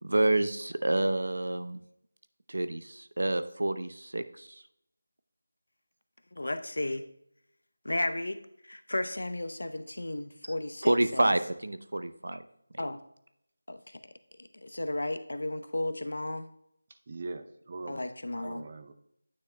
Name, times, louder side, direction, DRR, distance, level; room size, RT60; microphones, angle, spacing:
voice 1, 0.0-1.8 2.5-4.6 10.8-12.4, right 1 dB, 80° right, 11 dB, 0.6 m, -28 dB
voice 2, 6.4-7.1 7.8-11.3 12.8-13.0 13.7-14.0 14.6-16.5 17.9-18.7, left 1 dB, 85° left, 10 dB, 0.7 m, -34 dB
voice 3, 17.1-18.0 18.4-18.9, right 3 dB, 30° right, 8 dB, 0.5 m, -41 dB
9.5 x 6.4 x 2.2 m, 0.74 s
figure-of-eight pair, 175°, 0 cm